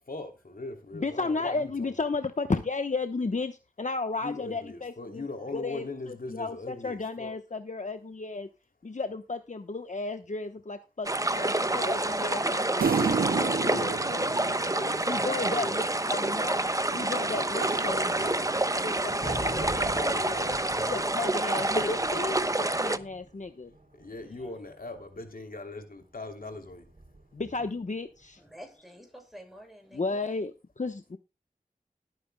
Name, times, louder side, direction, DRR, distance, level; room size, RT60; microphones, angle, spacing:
voice 1, 0.1-1.9 4.2-7.3 13.4-13.9 14.7-15.9 19.1-21.0 21.5-22.4 24.0-26.8, left 2 dB, 75° left, 4 dB, 2.9 m, -39 dB
voice 2, 0.9-5.2 5.5-8.5 8.8-14.3 15.0-16.6 16.9-18.4 18.7-20.3 20.9-21.9 22.2-23.7 27.3-28.4 29.9-31.2, left 3 dB, 55° left, 8 dB, 1.0 m, -34 dB
sound 1, 11.0-23.0, right 2 dB, 20° right, 0.9 m, -28 dB
sound 2, 12.8-15.5 16.9-19.0, right 6 dB, 90° right, 0.5 m, -32 dB
Thunder, 18.7-25.2 26.2-28.0, right 2 dB, 60° right, 3.4 m, -43 dB
voice 3, 28.4-30.3, equal, ahead, 3 dB, 6.3 m, -50 dB
20.0 x 9.4 x 2.2 m, 0.28 s
wide cardioid pair, 50°, 15 cm